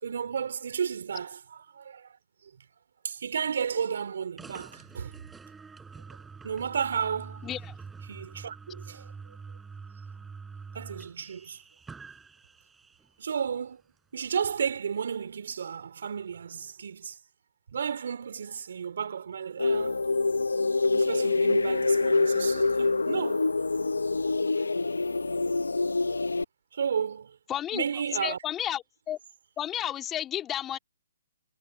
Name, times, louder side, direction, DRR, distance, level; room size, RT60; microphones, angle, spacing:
voice 1, 0.0-2.2 2.4-2.6 3.0-5.2 6.4-7.5 8.1-9.1 10.7-11.6 13.2-13.8 14.1-17.2 17.7-20.1 20.9-23.5 24.6-24.7 26.7-27.4 27.7-28.4, right 7 dB, 65° right, 4.4 m, -33 dB
sound 1, 4.4-13.1, right 5 dB, 10° right, 5.9 m, -46 dB
sound 2, 19.6-26.4, left 3 dB, 90° left, 1.0 m, -26 dB
voice 2, 27.5-27.8 28.2-29.2 29.6-30.8, left 11 dB, 15° left, 3.3 m, -32 dB
hypercardioid pair, 140°, 0 cm